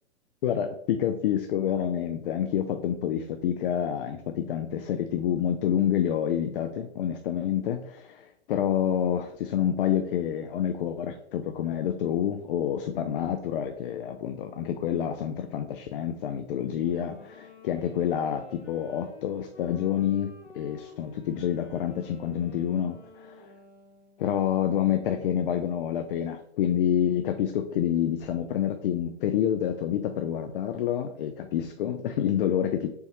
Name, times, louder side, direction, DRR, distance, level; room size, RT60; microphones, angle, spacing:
voice 1, 0.4-23.5 24.2-32.9, left 9 dB, 50° left, 7 dB, 0.4 m, -28 dB
Wind instrument woodwind instrument, 16.8-24.4, left 3 dB, 80° left, 1.4 m, -51 dB
4.1 x 3.5 x 3.0 m, 0.76 s
hypercardioid pair, 115°, 35 cm